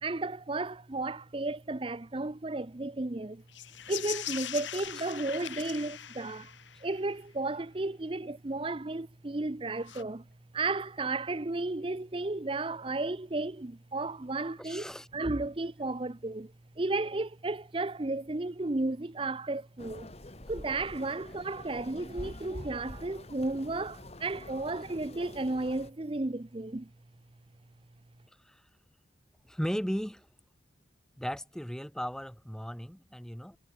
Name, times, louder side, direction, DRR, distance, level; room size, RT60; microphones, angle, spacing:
voice 1, 0.0-3.4 3.9-6.5 6.8-10.2 10.5-20.1 20.5-26.9, right 2 dB, 25° right, 0.6 m, -33 dB
sound 1, 3.5-7.0 9.8-10.0, left 11 dB, 75° left, 1.7 m, -40 dB
voice 2, 14.6-15.1 28.4-28.6 29.4-30.3 31.2-33.6, equal, 5° left, 1.7 m, -36 dB
sound 2, 19.8-25.9, left 1 dB, 35° left, 1.9 m, -46 dB
head